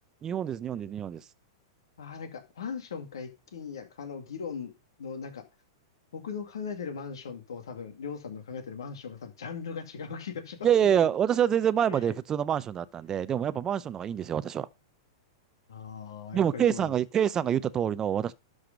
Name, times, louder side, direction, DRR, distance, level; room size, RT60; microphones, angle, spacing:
voice 1, 0.2-1.2 10.6-14.7 16.3-18.3, right 9 dB, 25° right, 0.6 m, -26 dB
voice 2, 2.0-4.7 5.0-5.4 6.1-11.1 11.9-12.0 15.7-17.0, left 6 dB, 80° left, 2.3 m, -39 dB
12.0 x 5.0 x 5.2 m
hypercardioid pair, 120°, 2 cm